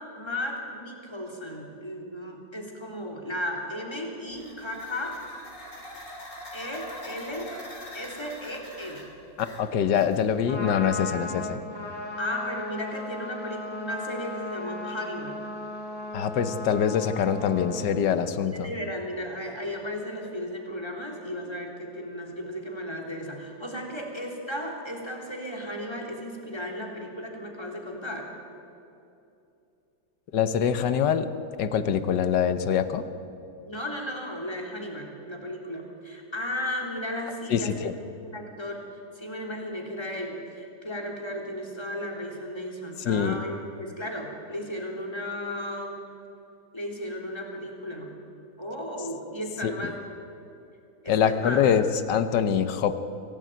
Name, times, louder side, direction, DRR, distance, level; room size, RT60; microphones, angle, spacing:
voice 1, 0.1-5.2 6.5-7.5 7.9-9.1 12.2-15.5 18.4-28.3 33.6-37.9 38.2-38.8 39.2-46.0 46.7-48.2 48.6-50.0 51.0-51.6, left 1 dB, 15° left, 0 dB, 3.6 m, -35 dB
sound 1, 4.3-10.5, left 1 dB, 40° left, 3.5 m, -43 dB
voice 2, 9.4-11.6 16.1-18.7 30.3-31.3 31.6-33.0 37.5-37.9 43.0-43.4 49.6-49.7 51.1-53.0, left 8 dB, 65° left, 10 dB, 1.6 m, -24 dB
Trumpet, 10.3-17.9, left 2 dB, 40° right, 3.9 m, -36 dB
25.5 x 17.0 x 9.1 m, 2.7 s
omnidirectional pair, 2.1 m